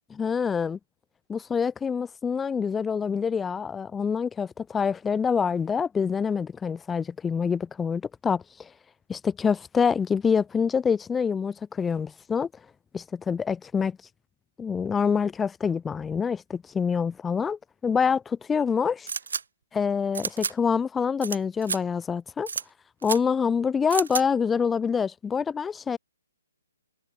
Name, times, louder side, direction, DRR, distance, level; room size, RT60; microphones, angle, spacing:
voice 1, 0.1-0.8 1.3-8.7 9.1-12.5 12.9-14.0 14.6-19.1 19.7-22.5 23.0-26.0, left 6 dB, 10° left, 0.6 m, -26 dB
sound 1, 19.1-19.4 20.1-20.5 21.2-21.4 21.6-21.8 22.5-22.6 23.0-23.2 23.9-24.2, right 5 dB, 60° right, 0.9 m, -30 dB
figure-of-eight pair, 130°, 0 cm